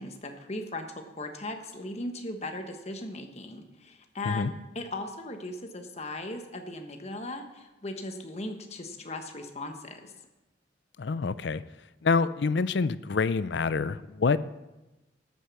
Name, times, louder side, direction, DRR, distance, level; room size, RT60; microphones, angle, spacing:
voice 1, 0.0-10.1, left 2 dB, 35° left, 5 dB, 1.2 m, -38 dB
voice 2, 11.0-11.6 12.0-14.4, left 4 dB, 65° left, 16 dB, 0.5 m, -26 dB
13.5 x 8.5 x 6.1 m, 1.0 s
head